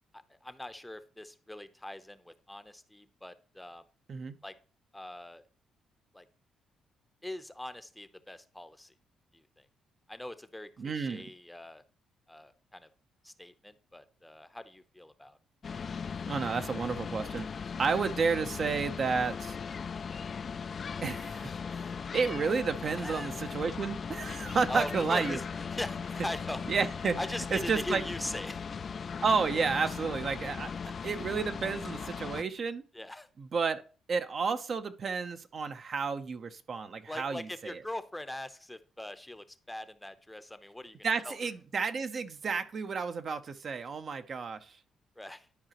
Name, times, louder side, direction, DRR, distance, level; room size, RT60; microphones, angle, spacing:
voice 1, 0.3-3.9 4.4-4.5 4.9-5.4 6.1-6.3 7.2-8.9 9.3-9.7 10.1-11.8 12.3-12.9 13.2-15.4 23.0-23.3 24.7-25.4 25.7-26.7 27.2-28.6 32.9-33.3 37.1-41.0 41.2-41.4 45.2-45.5, left 1 dB, 10° left, 11 dB, 0.7 m, -41 dB
voice 2, 10.8-11.3 16.3-17.5 17.8-19.6 21.0-21.9 22.1-25.4 26.7-27.2 27.5-28.0 29.2-30.7 31.0-32.8 33.4-33.8 34.1-37.8 41.0-44.8, right 5 dB, 50° right, 9 dB, 0.6 m, -31 dB
sound 1, 15.6-32.4, left 6 dB, 45° left, 0.3 m, -38 dB
11.5 x 4.9 x 2.9 m, 0.38 s
cardioid pair, 90°, 0 cm